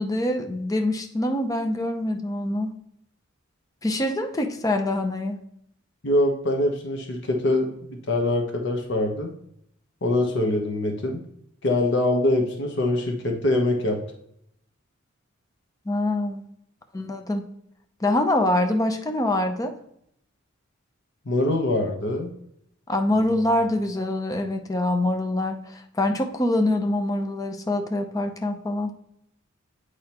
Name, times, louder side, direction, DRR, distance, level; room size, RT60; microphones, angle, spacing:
voice 1, 0.0-2.7 3.8-5.4 15.9-16.5 16.9-17.4 18.0-19.7 22.9-28.9, left 1 dB, 20° left, 5 dB, 0.6 m, -25 dB
voice 2, 6.0-9.3 10.0-11.2 11.6-14.0 21.3-22.3 23.2-23.3, left 1 dB, 60° left, 3 dB, 1.1 m, -24 dB
8.6 x 4.8 x 2.9 m, 0.73 s
head